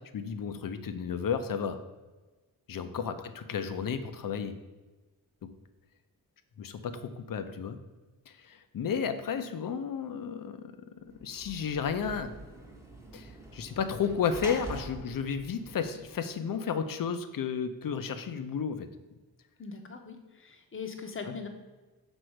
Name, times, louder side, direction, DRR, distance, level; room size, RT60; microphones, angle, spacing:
voice 1, 0.1-1.8 2.7-4.5 6.6-7.8 8.3-10.7 11.2-12.3 13.1-18.9, left 6 dB, 60° left, 10 dB, 0.7 m, -33 dB
Sliding door / Slam, 11.1-16.5, right 1 dB, 10° right, 1.0 m, -45 dB
voice 2, 19.6-21.5, left 5 dB, 35° left, 5 dB, 0.9 m, -41 dB
6.2 x 4.5 x 6.4 m, 1.2 s
wide cardioid pair, 170°, 38 cm